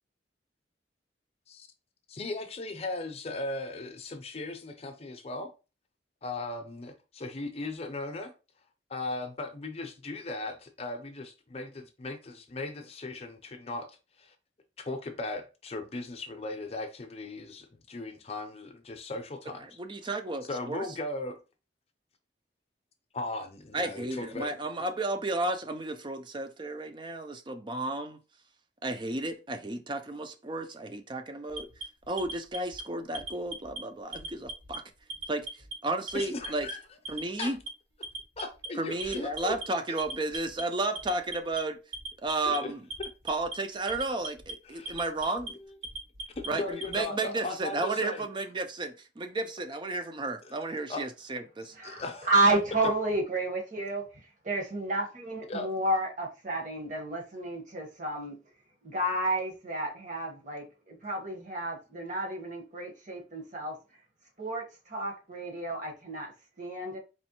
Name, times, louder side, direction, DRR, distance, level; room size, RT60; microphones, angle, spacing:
voice 1, 2.1-5.5 6.2-8.3 8.9-14.3 14.8-19.7 20.0-20.1 20.4-21.4 23.1-24.7 36.1-36.8 37.1-37.5 38.4-39.6 42.5-42.7 43.0-43.1 45.6-45.7 46.5-48.3 50.4-50.6 50.9-51.1 51.8-52.3 55.5-55.7, left 2 dB, 35° left, 0.6 m, -37 dB
voice 2, 19.6-20.8 23.7-28.2 28.8-31.7 32.1-34.8 35.3-35.5 35.8-36.7 37.1-37.6 38.8-41.8 42.2-42.8 43.3-44.5 44.9-45.6 46.5-51.7, right 2 dB, 25° right, 0.5 m, -33 dB
Alarm, 31.5-32.8 33.1-33.8 34.1-34.8 35.1-35.7 36.1-36.7 37.0-37.7 38.0-38.7 39.0-39.6 40.0-40.6 40.9-41.6 41.9-42.6 42.9-43.5 43.9-44.5 44.8-45.5 45.8-47.0, right 2 dB, 65° right, 1.1 m, -39 dB
voice 3, 51.7-58.4 58.8-63.7 64.4-66.3 66.6-67.0, right 2 dB, 45° right, 1.2 m, -31 dB
4.3 x 3.0 x 2.9 m
head